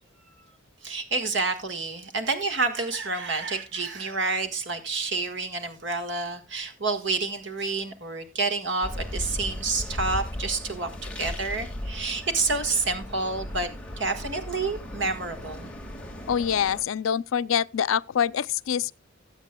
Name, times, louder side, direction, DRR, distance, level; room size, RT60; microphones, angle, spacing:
voice 1, 0.8-13.7 14.0-15.7, right 3 dB, 65° right, 1.6 m, -29 dB
sound 1, 8.8-16.8, left 1 dB, 5° left, 1.9 m, -36 dB
voice 2, 16.3-18.9, left 8 dB, 85° left, 0.4 m, -25 dB
19.0 x 8.2 x 2.2 m
head